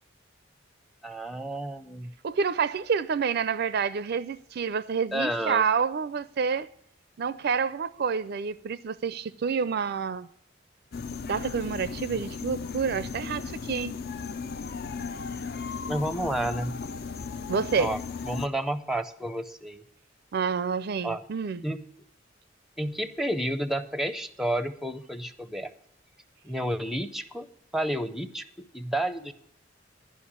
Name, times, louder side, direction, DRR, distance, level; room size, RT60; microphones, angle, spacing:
voice 1, 1.0-2.1 5.1-5.6 15.9-16.7 17.8-19.8 21.0-21.2 21.6-21.8 22.8-25.7 26.4-27.5 27.7-28.5 28.7-29.3, right 1 dB, ahead, 0.6 m, -30 dB
voice 2, 2.2-6.7 7.2-10.3 11.3-14.0 17.5-17.9 20.3-21.6, right 6 dB, 55° right, 0.4 m, -28 dB
sound 1, 10.9-18.5, left 5 dB, 55° left, 0.5 m, -36 dB
11.5 x 5.6 x 8.6 m
head